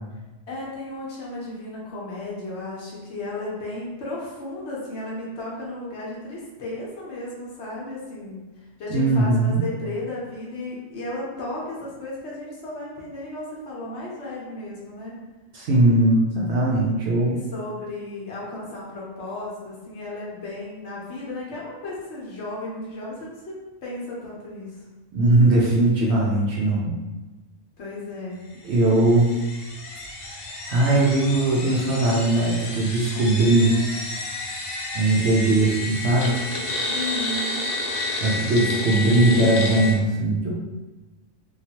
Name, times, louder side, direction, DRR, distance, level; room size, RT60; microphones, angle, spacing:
voice 1, 0.5-8.5 8.8-15.2 17.3-23.3 23.8-24.8 27.8-28.5 36.8-37.7, left 2 dB, 60° left, -5 dB, 1.0 m, -34 dB
voice 2, 8.9-9.6 15.5-17.4 25.1-27.0 28.6-29.3 30.7-33.7 34.9-36.4 38.2-40.6, right 2 dB, 65° right, -3 dB, 0.7 m, -20 dB
sound 1, 28.7-39.9, left 2 dB, 85° left, 1.1 m, -31 dB
3.1 x 2.3 x 2.8 m, 1.2 s
omnidirectional pair, 1.4 m